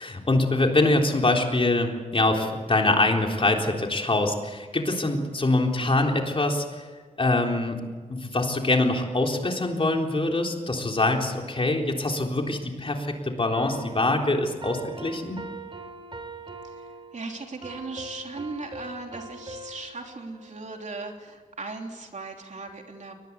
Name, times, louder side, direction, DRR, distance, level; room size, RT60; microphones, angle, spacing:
voice 1, 0.0-6.9 7.2-7.8 8.1-15.4, left 2 dB, 40° left, 2 dB, 3.7 m, -24 dB
sound 1, 13.5-20.8, right 2 dB, 40° right, 3.4 m, -42 dB
voice 2, 16.6-23.1, right 3 dB, 60° right, 3 dB, 3.2 m, -38 dB
22.5 x 20.5 x 8.4 m, 1.5 s
wide cardioid pair, 75°, 14 cm